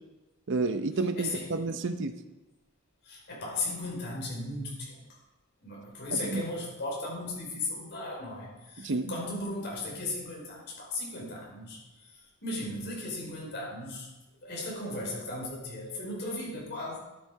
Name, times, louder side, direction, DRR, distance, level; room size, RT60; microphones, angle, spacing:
voice 1, 0.5-2.2 6.1-6.4 8.8-9.1, right 3 dB, 60° right, 8 dB, 0.7 m, -30 dB
voice 2, 1.2-1.5 3.0-5.0 5.6-11.8 12.4-14.1 14.4-17.0, left 2 dB, 55° left, -3 dB, 4.9 m, -36 dB
11.5 x 10.5 x 4.7 m, 1.0 s
head